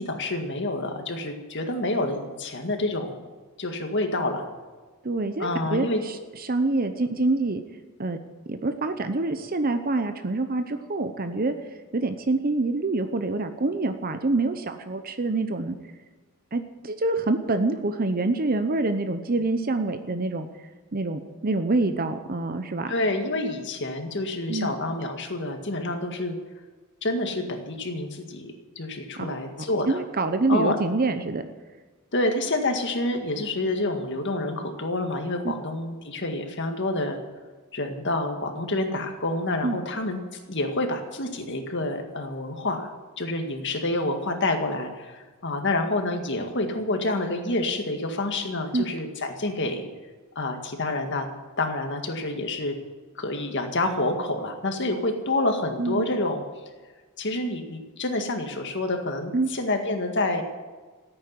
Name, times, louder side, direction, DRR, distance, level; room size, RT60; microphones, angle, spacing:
voice 1, 0.0-3.1 3.6-4.4 5.4-6.0 22.9-26.4 27.0-30.0 30.5-30.8 32.1-37.2 37.7-40.2 40.5-42.9 43.2-49.8 50.4-51.3 51.6-52.8 53.2-56.4 57.2-60.4, left 2 dB, 55° left, 5 dB, 1.9 m, -28 dB
voice 2, 5.0-7.6 8.0-8.2 8.5-11.5 11.9-15.7 16.5-20.5 20.9-22.9 24.5-24.8 29.2-29.3 29.9-31.5 35.4-35.5 39.6-39.8 48.7-48.8 55.8-56.1 59.3-59.5, right 2 dB, 40° right, 9 dB, 0.8 m, -26 dB
15.5 x 8.8 x 9.6 m, 1.3 s
head